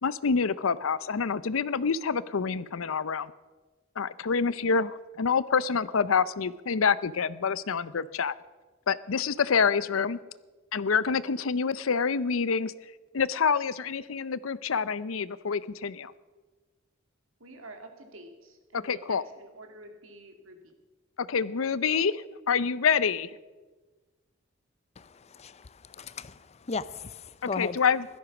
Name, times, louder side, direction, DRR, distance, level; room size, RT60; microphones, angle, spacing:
voice 1, 0.0-3.3 4.0-8.3 8.9-10.2 10.7-12.7 13.1-16.1 18.7-19.2 21.2-23.3 27.6-28.1, left 5 dB, 85° left, 18 dB, 0.6 m, -27 dB
voice 2, 17.4-20.7, right 2 dB, 85° right, 5 dB, 2.5 m, -48 dB
voice 3, 25.0-27.8, left 4 dB, 35° left, 16 dB, 0.5 m, -37 dB
16.0 x 13.0 x 6.0 m, 1.3 s
head